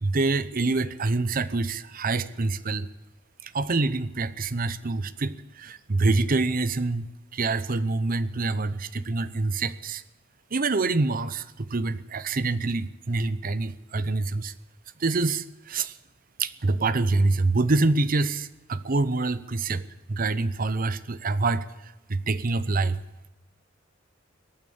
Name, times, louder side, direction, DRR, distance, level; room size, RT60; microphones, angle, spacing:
voice 1, 0.0-2.9 3.4-7.1 7.3-10.0 10.5-14.5 15.0-15.9 16.4-19.8 20.1-23.0, right 3 dB, 45° right, 15 dB, 0.8 m, -26 dB
21.5 x 8.9 x 7.1 m, 1.0 s
head